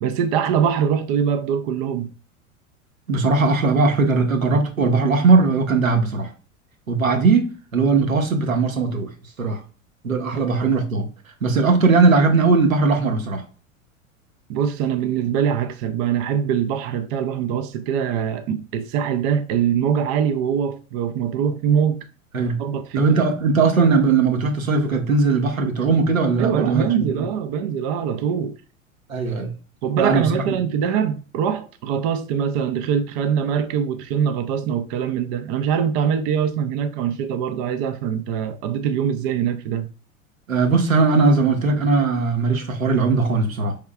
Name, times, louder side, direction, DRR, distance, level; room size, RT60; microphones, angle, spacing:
voice 1, 0.0-2.1 10.3-10.4 14.5-22.0 22.6-23.0 26.4-28.6 29.8-39.9, right 8 dB, 30° right, 0.4 m, -23 dB
voice 2, 3.1-6.3 6.9-9.1 9.4-9.6 10.0-11.1 11.4-13.4 22.3-22.6 23.0-26.9 29.1-29.5 30.0-30.3 40.5-43.8, right 4 dB, 80° right, 1.0 m, -19 dB
5.4 x 3.5 x 2.2 m
figure-of-eight pair, 85°, 40 cm